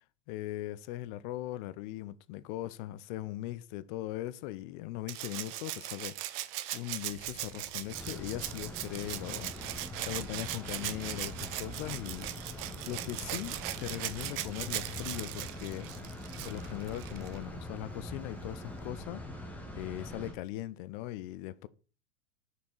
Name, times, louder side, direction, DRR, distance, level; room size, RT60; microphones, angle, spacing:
voice 1, 0.3-15.9 16.4-19.3 19.8-21.7, left 15 dB, 45° left, 0.4 m, -40 dB
Rattle (instrument), 5.1-17.4 18.8-18.9, right 15 dB, 50° right, 0.6 m, -39 dB
sound 1, 6.9-15.2, right 1 dB, 30° right, 1.2 m, -56 dB
sound 2, 7.9-20.3, left 1 dB, 5° left, 1.1 m, -43 dB
5.5 x 4.6 x 3.9 m
hypercardioid pair, 125°, 36 cm